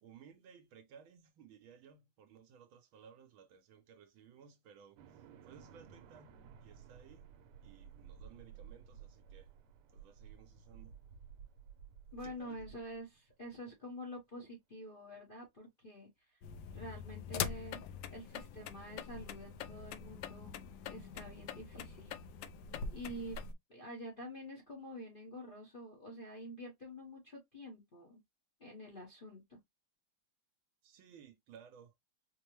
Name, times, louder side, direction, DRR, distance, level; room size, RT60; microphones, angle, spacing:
voice 1, 0.0-6.4 6.6-7.2 7.6-9.5 9.9-11.0 12.2-12.6 30.8-31.9, right 7 dB, 70° right, 1.4 m, -59 dB
sound 1, 5.0-13.5, right 8 dB, 85° right, 1.6 m, -55 dB
voice 2, 12.1-16.4 16.7-17.8 18.1-20.6 20.9-22.2 22.9-23.4 23.7-28.2 28.6-29.6, equal, 40° left, 0.7 m, -48 dB
sound 2, 16.4-23.5, left 7 dB, 75° left, 1.1 m, -43 dB
5.2 x 2.0 x 3.0 m
omnidirectional pair, 2.4 m